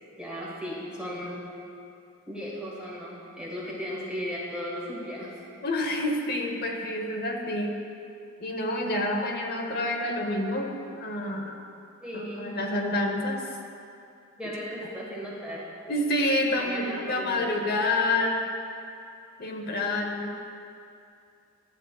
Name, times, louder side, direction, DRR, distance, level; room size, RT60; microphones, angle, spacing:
voice 1, 0.2-1.4 2.3-5.3 12.0-12.6 14.4-15.6 16.5-17.5, equal, 5° right, -7 dB, 1.4 m, -36 dB
voice 2, 5.6-7.8 8.4-11.5 12.1-13.5 15.9-18.5 19.4-20.4, left 1 dB, 45° left, 2 dB, 0.8 m, -28 dB
11.5 x 8.0 x 2.3 m, 2.5 s
head